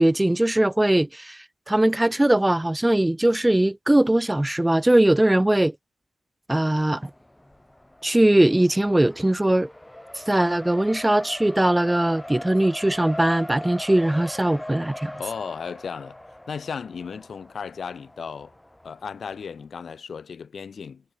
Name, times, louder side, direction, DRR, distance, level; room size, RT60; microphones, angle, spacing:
voice 1, 0.0-1.4 1.7-5.7 6.5-7.1 8.0-9.7 10.3-15.1, right 1 dB, 15° right, 0.8 m, -20 dB
Race car auto racing, 7.0-19.6, left 1 dB, 10° left, 6.4 m, -41 dB
voice 2, 15.1-16.2 16.5-18.5 18.8-21.0, left 6 dB, 65° left, 5.4 m, -35 dB
cardioid pair, 75°, 0 cm